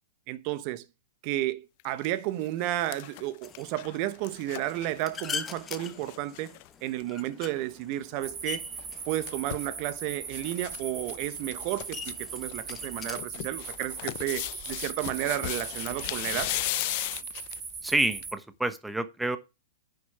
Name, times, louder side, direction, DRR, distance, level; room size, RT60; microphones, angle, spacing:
voice 1, 0.3-0.8 1.2-8.6 9.1-16.5, right 14 dB, 45° right, 1.1 m, -32 dB
sound 1, 1.8-2.1 2.5-6.7 7.0-7.1 7.3-7.5 8.8-9.7 10.3-10.8 11.1-11.2 11.5-12.1 12.5-17.7 18.2-18.3, left 19 dB, 50° left, 0.6 m, -36 dB
sound 2, 3.4-13.2, left 6 dB, 20° left, 1.3 m, -43 dB
sound 3, 8.2-18.3, right 5 dB, 25° right, 2.7 m, -39 dB
voice 2, 17.8-19.4, right 2 dB, 5° right, 1.1 m, -28 dB
10.0 x 6.8 x 4.8 m
hypercardioid pair, 115°, 0 cm